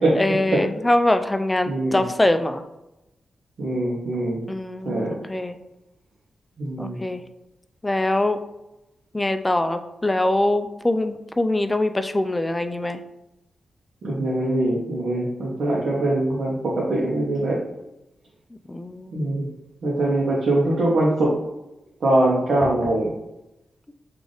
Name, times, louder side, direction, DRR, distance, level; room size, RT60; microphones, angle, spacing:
voice 1, 0.1-2.6 4.5-5.6 6.8-7.2 7.8-8.4 9.1-13.0 18.7-19.4, left 1 dB, 15° left, 8 dB, 0.3 m, -23 dB
voice 2, 1.7-2.0 3.6-4.4 4.8-5.1 6.6-7.0 14.0-17.6 19.1-19.5 19.8-21.3 22.0-23.1, right 1 dB, 70° right, -6 dB, 0.8 m, -22 dB
3.4 x 2.5 x 3.8 m, 0.93 s
cardioid pair, 85°, 0 cm